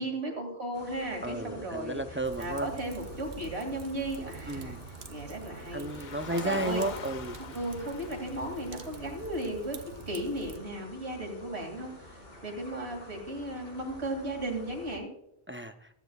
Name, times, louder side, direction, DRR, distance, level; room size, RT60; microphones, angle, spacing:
voice 1, 0.0-2.0 2.4-4.8 5.1-6.9 7.5-9.8 10.1-15.1, right 1 dB, 85° right, 3 dB, 2.7 m, -36 dB
sound 1, 0.7-15.0, left 1 dB, 70° left, 2.9 m, -50 dB
voice 2, 1.2-2.7 4.5-4.8 5.7-7.4 15.5-15.9, right 1 dB, 15° right, 7 dB, 0.4 m, -33 dB
Fire, 2.2-10.6, right 7 dB, 60° right, 0.9 m, -47 dB
Car, 5.5-9.9, left 6 dB, 50° left, 0.7 m, -44 dB
14.5 x 13.0 x 2.3 m, 0.82 s
omnidirectional pair, 1.1 m